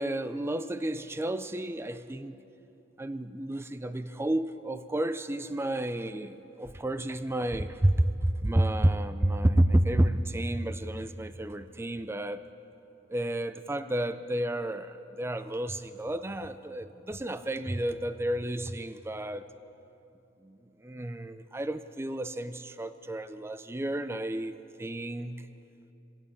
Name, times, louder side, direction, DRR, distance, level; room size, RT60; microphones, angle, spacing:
voice 1, 0.0-2.4 3.0-12.4 13.1-19.5 20.4-20.6 20.8-25.5, right 1 dB, 10° right, 11 dB, 0.4 m, -30 dB
26.0 x 12.0 x 8.4 m, 3.0 s
head